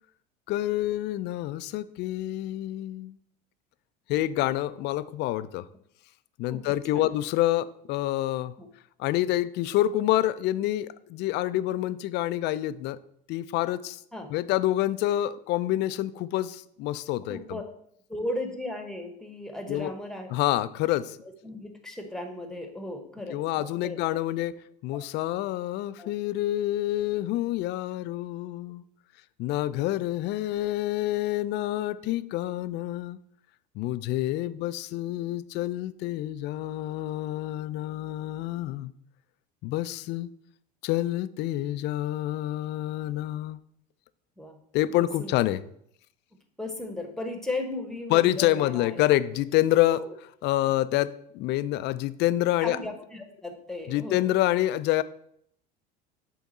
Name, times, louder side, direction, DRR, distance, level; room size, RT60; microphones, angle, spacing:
voice 1, 0.5-3.1 4.1-5.7 6.4-8.5 9.0-13.0 13.3-14.0 14.3-17.6 19.7-19.9 20.3-21.2 23.3-24.5 24.8-28.8 29.4-33.2 33.8-38.9 39.6-40.3 40.8-43.6 44.7-45.6 48.1-50.0 50.4-52.8 53.9-55.0, left 14 dB, 55° left, 15 dB, 0.4 m, -27 dB
voice 2, 17.3-17.6 18.1-20.3 21.4-24.0 24.9-25.0 26.0-26.1 44.4-44.5 45.2-45.3 46.6-49.0 49.9-50.1 52.6-54.3, left 1 dB, ahead, 4 dB, 1.2 m, -36 dB
8.4 x 3.6 x 4.2 m, 0.69 s
supercardioid pair, 100°, 21 cm